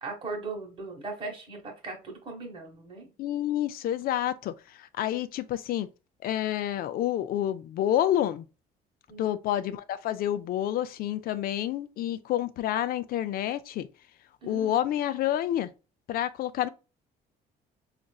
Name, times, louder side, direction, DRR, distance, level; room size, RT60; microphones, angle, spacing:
voice 1, 0.0-3.1 9.1-9.4 14.4-14.7, right 3 dB, 30° right, 1.1 m, -38 dB
voice 2, 3.2-5.9 6.2-8.4 9.2-13.9 14.4-15.7 16.1-16.7, left 12 dB, 60° left, 0.4 m, -29 dB
4.0 x 2.5 x 2.2 m
cardioid pair, 110°, 17 cm